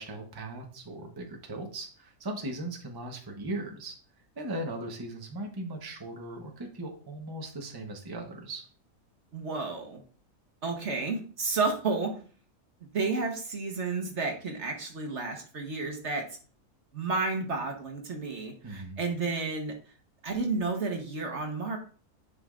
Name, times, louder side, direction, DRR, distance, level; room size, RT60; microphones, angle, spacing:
voice 1, 0.0-3.9 4.4-8.7 18.6-19.0, right 1 dB, 20° right, 2 dB, 1.0 m, -38 dB
voice 2, 9.3-10.0 10.6-12.1 12.9-16.2 16.9-19.7 20.2-21.8, right 3 dB, 50° right, 3 dB, 1.4 m, -31 dB
10.5 x 5.5 x 2.5 m, 0.41 s
omnidirectional pair, 1.5 m